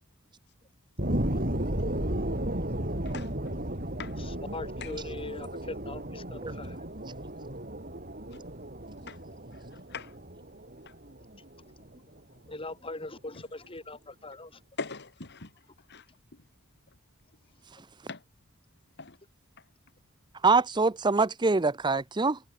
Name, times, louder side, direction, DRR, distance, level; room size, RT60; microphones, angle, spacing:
sound 1, 1.0-12.0 12.5-12.6, right 1 dB, 40° right, 7.6 m, -34 dB
voice 1, 4.2-6.8 12.5-14.6 21.9-22.0, left 2 dB, 25° left, 4.2 m, -41 dB
voice 2, 9.7-10.1 10.9-11.0 14.8-15.5 15.9-16.1 18.1-18.2 19.0-19.2, left 4 dB, 50° left, 2.4 m, -40 dB
voice 3, 20.4-22.4, right 3 dB, 20° right, 0.6 m, -24 dB
head